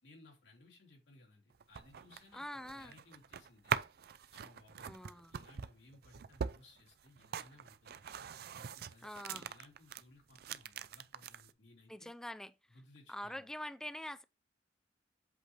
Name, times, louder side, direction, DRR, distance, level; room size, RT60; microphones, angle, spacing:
voice 1, 0.0-3.9 4.3-5.0 5.3-8.1 8.5-12.1 12.7-13.5, left 2 dB, 90° left, 3.1 m, -61 dB
sound 1, 1.5-10.0 10.3-11.5, right 7 dB, 60° right, 0.5 m, -42 dB
voice 2, 2.3-2.9 4.9-5.3 9.0-9.5 11.9-12.5 13.1-14.2, left 1 dB, 5° left, 0.3 m, -45 dB
8.1 x 3.2 x 5.8 m
head